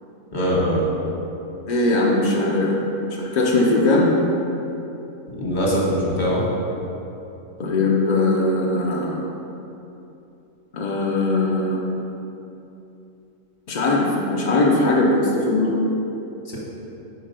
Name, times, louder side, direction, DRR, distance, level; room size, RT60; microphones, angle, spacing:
voice 1, 0.3-0.8 5.3-6.4, equal, 35° left, -4 dB, 1.1 m, -22 dB
voice 2, 1.7-2.8 3.2-4.1 7.6-9.2 10.7-11.8 13.7-15.8, left 2 dB, 65° left, -3 dB, 0.4 m, -20 dB
4.8 x 4.3 x 5.1 m, 2.9 s
omnidirectional pair, 1.6 m